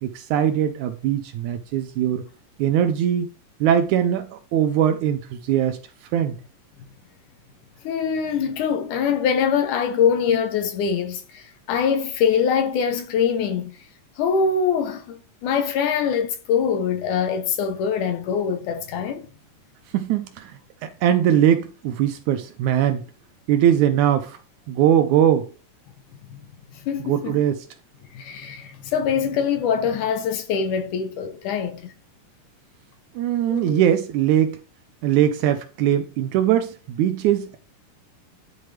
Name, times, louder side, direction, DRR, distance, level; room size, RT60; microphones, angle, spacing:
voice 1, 0.0-2.2 2.6-3.3 3.6-5.8 6.1-6.4 19.9-23.0 23.5-24.4 24.7-25.5 27.1-27.6 33.2-34.6 35.0-37.6, right 10 dB, 80° right, 1.9 m, -21 dB
voice 2, 7.8-13.7 14.2-19.3 26.3-26.4 26.8-27.4 28.1-31.9 33.5-33.8, left 7 dB, 75° left, 2.4 m, -23 dB
11.0 x 4.4 x 3.4 m
omnidirectional pair, 3.8 m